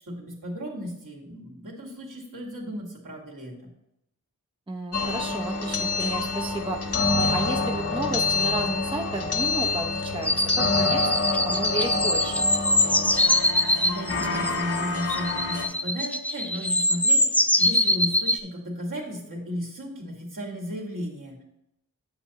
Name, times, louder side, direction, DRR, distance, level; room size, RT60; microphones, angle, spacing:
voice 1, 0.1-3.5 13.8-21.4, equal, 65° right, -2 dB, 2.2 m, -35 dB
voice 2, 4.7-11.0 11.4-12.5, right 2 dB, 15° right, 1 dB, 0.8 m, -32 dB
sound 1, 4.9-15.7, left 3 dB, 45° left, 1.3 m, -27 dB
sound 2, 10.2-18.4, left 1 dB, 5° left, 0.3 m, -23 dB
8.6 x 6.9 x 3.0 m, 0.79 s
cardioid pair, 50°, 34 cm